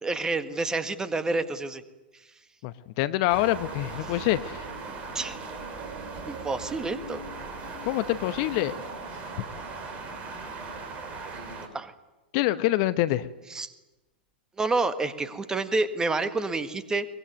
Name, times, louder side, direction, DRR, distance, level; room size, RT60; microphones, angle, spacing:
voice 1, 0.0-1.8 4.0-4.1 5.1-5.4 6.3-7.2 11.7-11.9 13.5-13.7 14.6-17.1, right 3 dB, 10° right, 12 dB, 1.7 m, -28 dB
voice 2, 2.6-4.6 7.9-8.7 12.3-13.3, left 15 dB, 45° left, 14 dB, 1.0 m, -26 dB
sound 1, 3.3-11.7, right 3 dB, 25° right, 4.5 m, -38 dB
23.5 x 21.0 x 9.5 m, 1.1 s
figure-of-eight pair, 100°, 5 cm